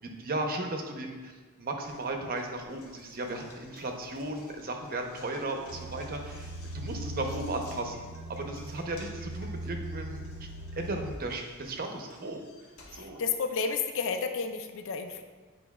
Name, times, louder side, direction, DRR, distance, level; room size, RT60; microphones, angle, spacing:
voice 1, 0.0-1.3 1.6-6.5 6.7-8.0 8.3-10.5 10.8-12.4 12.9-13.2, right 2 dB, 45° right, 3 dB, 0.7 m, -35 dB
Knock, 1.8-14.0, left 2 dB, 85° left, 1.2 m, -55 dB
sound 1, 5.7-11.1, right 1 dB, 80° right, 0.4 m, -40 dB
voice 2, 12.9-15.2, left 5 dB, 65° left, 7 dB, 0.5 m, -31 dB
9.3 x 5.0 x 2.3 m, 1.4 s
head